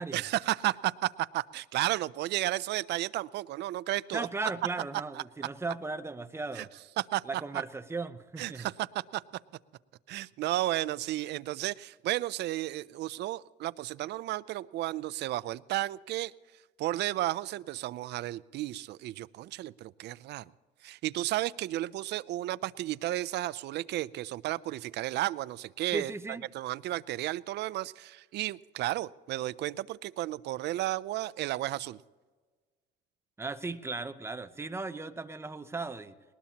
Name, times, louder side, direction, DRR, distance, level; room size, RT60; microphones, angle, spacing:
voice 1, 0.1-4.3 6.5-6.7 7.0-7.2 7.5-7.6 8.4-9.2 10.1-16.3 16.8-20.4 20.8-26.1 26.5-32.0, right 15 dB, 60° right, 19 dB, 0.4 m, -33 dB
voice 2, 4.1-6.7 7.2-8.7 25.9-26.4 33.4-36.1, right 3 dB, 15° right, 10 dB, 0.7 m, -36 dB
20.0 x 19.5 x 2.9 m, 1.4 s
cardioid pair, 140°, 20 cm